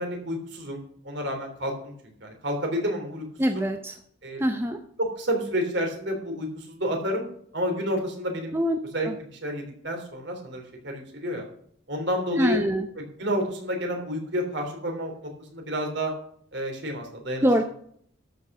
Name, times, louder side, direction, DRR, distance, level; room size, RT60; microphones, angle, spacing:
voice 1, 0.0-1.9 2.2-3.2 3.5-3.6 4.2-4.4 5.0-7.3 7.5-8.5 8.9-11.5 11.9-12.6 13.0-16.1 16.5-17.4, equal, 60° right, 2 dB, 3.4 m, -30 dB
voice 2, 3.4-4.0 4.4-4.8 8.5-8.8 9.1-9.2 12.4-12.9 17.4-17.6, equal, 10° right, 5 dB, 0.6 m, -24 dB
13.0 x 6.1 x 6.7 m, 0.64 s
head